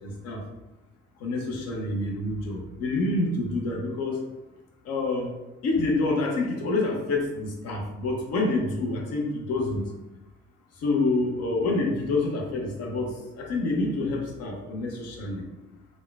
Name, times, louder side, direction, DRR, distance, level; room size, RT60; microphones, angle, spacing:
voice 1, 0.0-0.4 1.2-4.2 4.8-5.3 5.6-9.8 10.8-15.5, left 2 dB, 55° left, 1 dB, 0.8 m, -27 dB
3.6 x 2.4 x 2.2 m, 0.99 s
hypercardioid pair, 50°, 29 cm